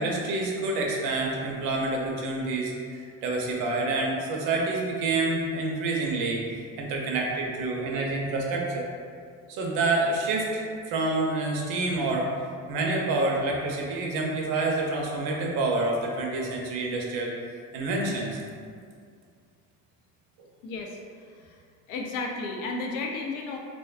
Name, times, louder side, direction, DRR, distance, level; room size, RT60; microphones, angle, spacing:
voice 1, 0.0-6.5 6.8-8.9 9.5-12.3 12.7-17.3 17.7-18.4, right 2 dB, 65° right, -1 dB, 0.6 m, -28 dB
voice 2, 20.6-21.6 21.9-23.6, left 3 dB, 90° left, 1 dB, 0.5 m, -33 dB
2.5 x 2.2 x 2.3 m, 2.2 s
supercardioid pair, 100°, 39 cm